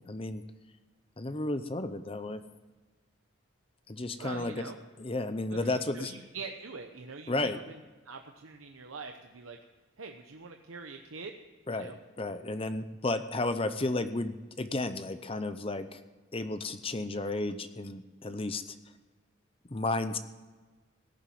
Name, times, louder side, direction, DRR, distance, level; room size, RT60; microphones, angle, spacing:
voice 1, 0.1-0.4 1.2-2.4 3.9-4.7 5.0-6.1 7.3-7.6 11.7-16.0 16.3-18.6 19.7-20.2, left 2 dB, 25° left, 10 dB, 0.7 m, -33 dB
voice 2, 4.2-4.8 5.5-7.8 8.0-9.6 10.0-11.3 11.7-12.0, right 4 dB, 85° right, 4 dB, 1.0 m, -44 dB
17.0 x 7.2 x 9.3 m, 1.3 s
head